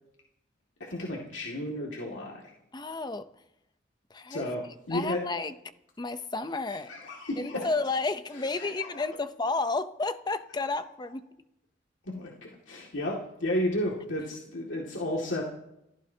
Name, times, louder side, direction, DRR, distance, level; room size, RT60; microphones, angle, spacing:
voice 1, 0.8-2.5 4.3-5.2 6.9-7.7 8.5-9.1 12.1-15.4, left 1 dB, 85° left, 2.2 m, -33 dB
voice 2, 2.7-3.3 4.1-4.5 4.9-5.5 6.0-6.9 7.4-11.3, left 3 dB, 25° left, 0.7 m, -31 dB
28.0 x 14.5 x 2.8 m
head